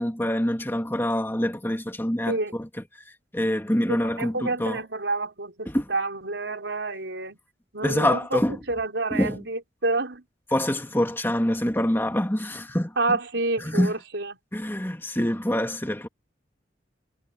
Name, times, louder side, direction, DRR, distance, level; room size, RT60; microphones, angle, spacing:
voice 1, 0.0-2.7 3.3-4.8 5.7-5.9 7.8-8.6 9.1-9.4 10.5-12.9 13.6-13.9 14.5-16.1, left 1 dB, 15° left, 2.2 m, -25 dB
voice 2, 4.0-7.4 7.7-10.2 13.0-14.4, right 2 dB, 85° right, 4.6 m, -29 dB
head